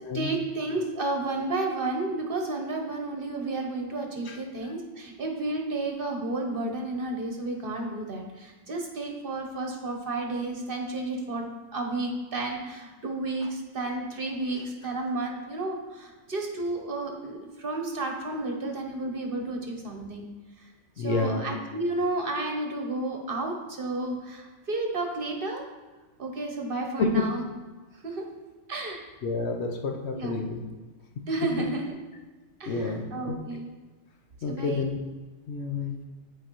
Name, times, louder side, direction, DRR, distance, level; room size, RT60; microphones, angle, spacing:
voice 1, 0.1-11.5 11.7-20.3 20.6-20.7 21.0-25.6 26.2-27.4 28.0-28.2 28.7-29.0 30.1-30.4 31.3-32.0 32.6-33.7 34.5-34.9, right 2 dB, 50° right, 2 dB, 1.0 m, -32 dB
voice 2, 21.0-21.4 27.0-27.2 29.2-30.6 32.7-33.3 34.4-35.0 35.5-36.0, left 3 dB, 65° left, 3 dB, 0.9 m, -29 dB
10.0 x 4.8 x 3.0 m, 1.3 s
omnidirectional pair, 1.3 m